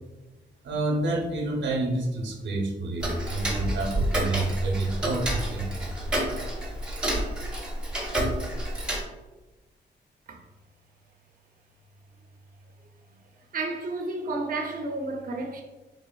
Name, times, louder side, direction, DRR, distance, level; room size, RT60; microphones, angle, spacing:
voice 1, 0.6-5.7, right 2 dB, 90° right, 0.7 m, -28 dB
Tick-tock, 3.0-9.0, right 1 dB, 5° right, 0.6 m, -29 dB
voice 2, 13.5-15.6, right 2 dB, 50° right, 0.5 m, -31 dB
4.1 x 3.3 x 2.2 m
wide cardioid pair, 125°, 18 cm